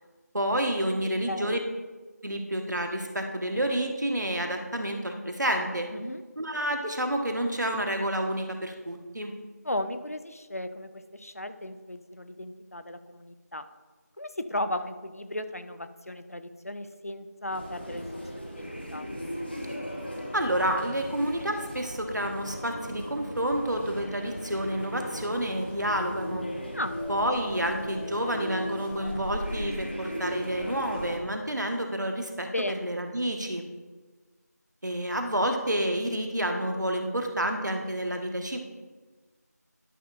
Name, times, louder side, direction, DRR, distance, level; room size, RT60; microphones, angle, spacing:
voice 1, 0.3-1.6 2.2-5.9 6.4-9.3 20.3-26.5 27.1-32.5 32.8-33.6 34.8-38.6, right 1 dB, 90° right, 4 dB, 1.3 m, -29 dB
voice 2, 1.2-1.6 5.9-6.2 9.6-13.7 14.2-18.3 18.6-19.1 26.7-27.0 32.5-32.9, left 1 dB, 55° left, 10 dB, 0.5 m, -35 dB
sound 1, 17.5-31.2, equal, 35° left, 1.0 m, -37 dB
12.0 x 5.9 x 2.5 m, 1.3 s
figure-of-eight pair, 180°, 9 cm